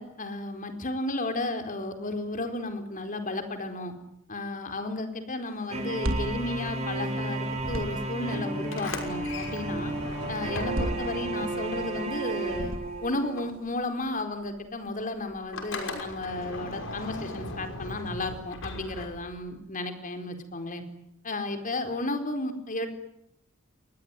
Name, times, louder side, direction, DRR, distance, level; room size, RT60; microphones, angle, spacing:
voice 1, 0.0-3.9 4.3-9.9 10.3-12.7 13.0-20.8 21.2-22.9, left 2 dB, 40° left, 7 dB, 4.4 m, -33 dB
sound 1, 5.7-13.4, right 2 dB, 30° right, 7.1 m, -33 dB
sound 2, 5.8-7.2 7.5-8.3 10.5-11.7 12.4-13.2, equal, 70° right, 3.3 m, -34 dB
Sliding door, 8.6-12.9 13.1-19.5, left 2 dB, 65° left, 5.9 m, -39 dB
28.0 x 21.0 x 9.1 m, 0.78 s
head